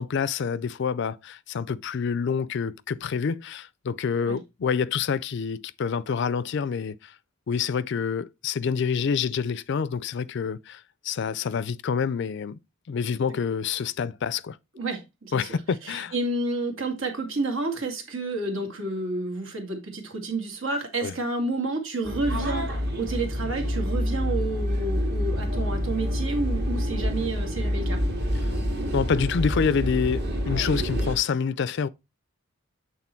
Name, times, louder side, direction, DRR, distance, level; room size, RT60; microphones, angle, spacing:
voice 1, 0.0-7.1 7.5-12.6 12.9-14.6 15.3-16.1 21.0-21.1 25.5-25.7 28.9-31.9, left 6 dB, 55° left, 0.4 m, -27 dB
voice 2, 14.7-15.5 15.8-28.0, right 2 dB, 70° right, 2.1 m, -30 dB
sound 1, 22.0-31.1, equal, 50° right, 1.9 m, -27 dB
8.3 x 3.8 x 4.4 m
head